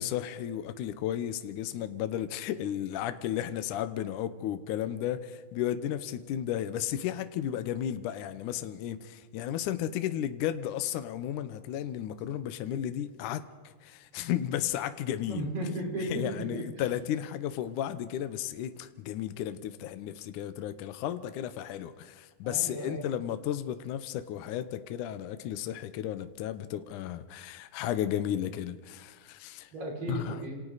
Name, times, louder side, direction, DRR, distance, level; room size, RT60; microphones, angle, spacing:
voice 1, 0.0-15.5 16.1-29.7 30.1-30.4, left 11 dB, 70° left, 10 dB, 2.1 m, -34 dB
voice 2, 15.3-16.6 22.4-23.0 29.7-30.6, right 1 dB, 60° right, -2 dB, 7.6 m, -35 dB
29.0 x 27.5 x 4.1 m, 1.4 s
omnidirectional pair, 4.3 m